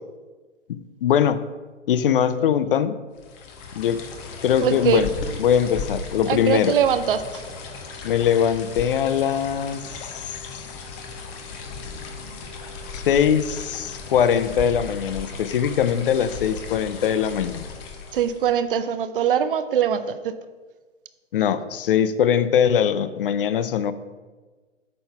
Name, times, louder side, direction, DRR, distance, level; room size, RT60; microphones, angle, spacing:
voice 1, 0.7-1.4 1.9-3.0 3.7-4.0 4.4-5.1 5.4-6.7 8.0-10.2 12.9-17.6 21.3-23.9, left 8 dB, 50° left, 14 dB, 0.5 m, -21 dB
sound 1, 3.2-18.6, left 4 dB, 25° left, 0.9 m, -36 dB
voice 2, 4.6-5.1 6.3-7.4 18.1-20.3, right 8 dB, 50° right, 11 dB, 0.6 m, -22 dB
8.9 x 3.9 x 5.7 m, 1.3 s
figure-of-eight pair, 120°, 37 cm